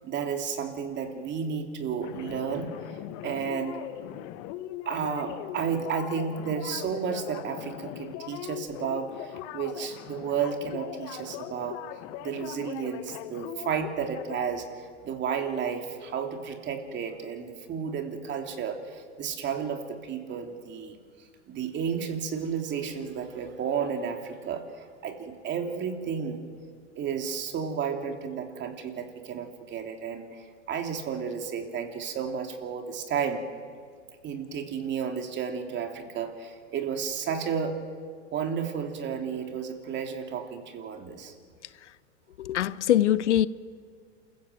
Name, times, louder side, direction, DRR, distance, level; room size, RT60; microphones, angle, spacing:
voice 1, 0.0-3.0 3.2-4.1 4.8-21.0 21.5-26.4 27.0-33.4 34.2-37.8 38.3-41.3, right 7 dB, 30° right, 2.9 m, -32 dB
sound 1, 2.0-14.5, left 13 dB, 45° left, 1.1 m, -40 dB
voice 2, 42.4-43.5, left 11 dB, 85° left, 0.8 m, -23 dB
28.0 x 15.5 x 8.0 m
hypercardioid pair, 115°, 34 cm